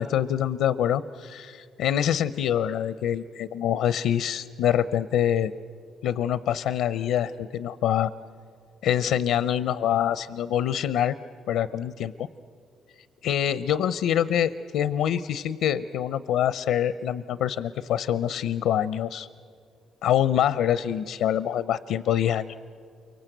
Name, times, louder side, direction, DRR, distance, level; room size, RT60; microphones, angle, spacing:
voice 1, 0.0-5.5 6.0-8.1 8.8-11.2 11.5-12.3 13.2-19.3 20.0-22.6, left 10 dB, 85° left, 15 dB, 0.6 m, -25 dB
29.0 x 24.5 x 7.9 m, 2.4 s
cardioid pair, 90°, 0 cm